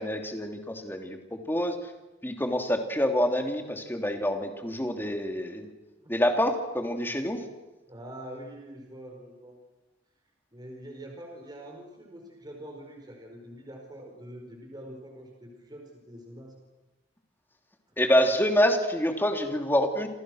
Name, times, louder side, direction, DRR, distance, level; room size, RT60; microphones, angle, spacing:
voice 1, 0.0-1.7 2.2-5.7 6.1-7.4 18.0-20.1, equal, 10° left, 4 dB, 2.9 m, -26 dB
voice 2, 7.9-9.6 10.5-16.6, right 1 dB, 20° right, 1 dB, 4.9 m, -44 dB
29.0 x 28.0 x 6.4 m, 1.1 s
head